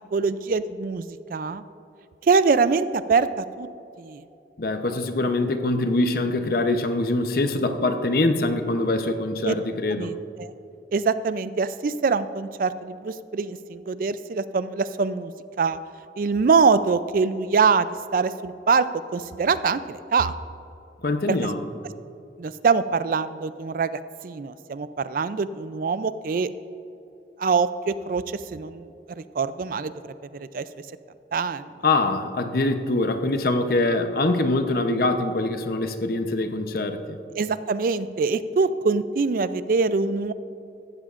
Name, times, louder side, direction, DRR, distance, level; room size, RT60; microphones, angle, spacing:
voice 1, 0.1-1.1 1.3-1.6 2.3-3.7 4.0-4.2 9.4-9.5 9.9-10.5 10.9-15.3 15.6-15.8 16.2-18.9 19.1-20.3 22.4-23.9 24.2-26.5 27.4-28.2 28.5-28.8 29.4-29.9 30.3-30.7 31.3-31.7 37.3-40.3, right 5 dB, 50° right, 14 dB, 0.4 m, -23 dB
voice 2, 4.6-10.2 21.0-21.6 31.8-37.2, left 2 dB, 55° left, 7 dB, 0.7 m, -24 dB
16.0 x 12.5 x 2.5 m, 2.8 s
head